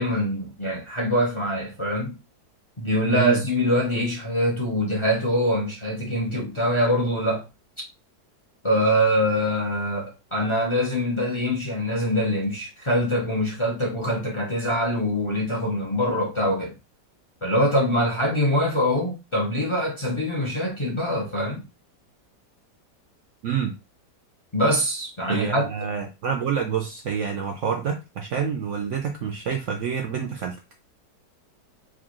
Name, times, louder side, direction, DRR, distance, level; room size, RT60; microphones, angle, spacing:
voice 1, 0.0-2.2 2.8-7.4 8.6-16.7 17.4-21.6 24.5-25.9, equal, 50° left, 0.3 m, -24 dB
voice 2, 3.1-3.4 23.4-23.7 25.3-30.6, right 7 dB, 80° right, 0.6 m, -27 dB
4.6 x 2.4 x 3.0 m
omnidirectional pair, 1.9 m